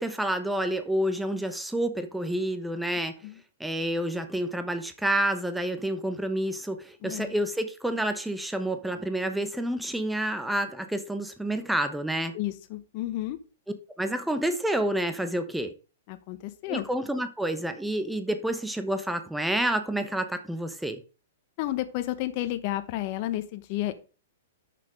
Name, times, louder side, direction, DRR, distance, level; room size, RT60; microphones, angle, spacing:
voice 1, 0.0-3.1 3.6-12.3 14.0-15.7 16.7-21.0, right 1 dB, 5° right, 0.9 m, -29 dB
voice 2, 7.0-7.3 12.3-13.4 16.1-16.9 21.6-23.9, left 15 dB, 45° left, 1.0 m, -31 dB
6.8 x 5.8 x 4.9 m
hypercardioid pair, 140°, 0 cm